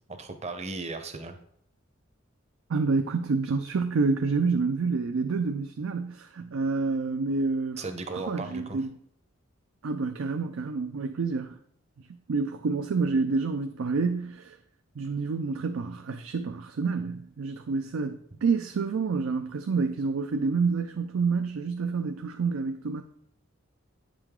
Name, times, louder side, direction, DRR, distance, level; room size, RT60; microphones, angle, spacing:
voice 1, 0.1-1.4 7.8-8.8, right 3 dB, 35° right, 0.8 m, -36 dB
voice 2, 2.7-7.8 8.1-8.9 9.8-11.6 12.3-14.6 15.0-23.0, right 4 dB, 75° right, 0.5 m, -28 dB
9.0 x 5.0 x 3.7 m
head